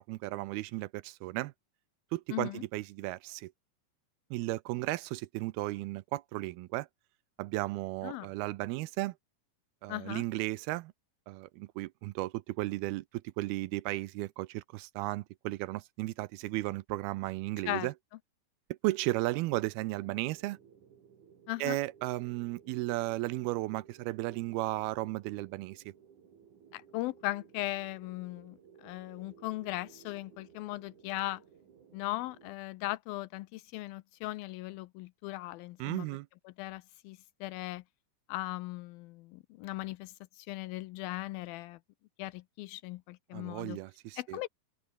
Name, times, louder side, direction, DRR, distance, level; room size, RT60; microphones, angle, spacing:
voice 1, 0.0-1.5 2.1-3.5 4.3-6.9 7.4-9.1 9.8-10.9 11.3-13.0 13.4-17.9 18.8-20.6 21.6-25.9 35.8-36.3 43.3-44.4, right 19 dB, 85° right, 2.5 m, -35 dB
voice 2, 2.3-2.6 8.0-8.3 9.9-10.2 17.6-17.9 21.5-21.8 26.7-31.4 31.9-36.1 36.5-37.8 38.3-41.8 42.2-43.8 44.2-44.5, left 18 dB, 80° left, 2.3 m, -38 dB
sound 1, 19.8-32.5, right 7 dB, 55° right, 3.9 m, -58 dB
open air
omnidirectional pair, 4.5 m